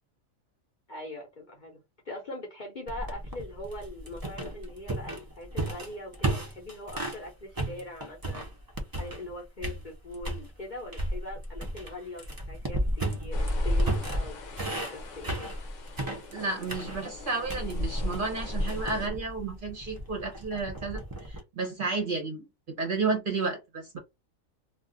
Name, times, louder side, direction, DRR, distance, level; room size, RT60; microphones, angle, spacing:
voice 1, 0.9-1.8 2.0-8.5 9.0-15.3, left 1 dB, 45° left, 0.7 m, -42 dB
sound 1, 2.9-7.2 7.6-9.3 9.6-10.4 10.9-21.4, right 1 dB, 30° right, 0.3 m, -32 dB
sound 2, 13.3-19.1, left 5 dB, 65° left, 0.9 m, -45 dB
voice 2, 16.3-22.4 22.8-24.0, right 4 dB, 50° right, 0.8 m, -32 dB
2.4 x 2.3 x 3.7 m
omnidirectional pair, 1.4 m